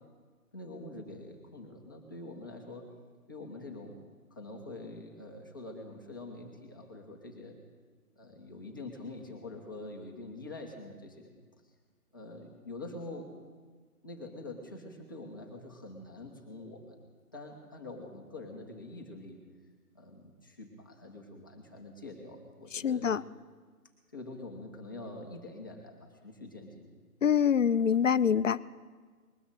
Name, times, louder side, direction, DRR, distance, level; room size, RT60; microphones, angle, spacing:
voice 1, 0.5-2.9 3.3-4.0 4.3-7.6 8.2-11.3 12.1-13.3 14.0-17.0 17.3-19.4 19.9-23.1 24.1-26.9, left 2 dB, 15° left, -1 dB, 0.9 m, -45 dB
voice 2, 22.7-23.2 27.2-28.6, left 8 dB, 55° left, 16 dB, 0.6 m, -25 dB
20.5 x 13.0 x 5.2 m, 1.5 s
figure-of-eight pair, 160°, 46 cm